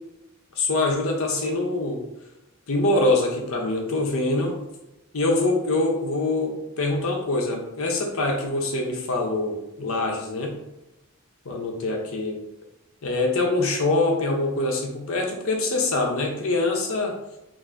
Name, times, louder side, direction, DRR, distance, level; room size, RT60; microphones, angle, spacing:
voice 1, 0.6-2.0 2.7-4.6 5.1-10.6 11.4-12.4 13.0-17.2, left 2 dB, 80° left, 1 dB, 0.7 m, -24 dB
2.6 x 2.6 x 3.4 m, 0.92 s
head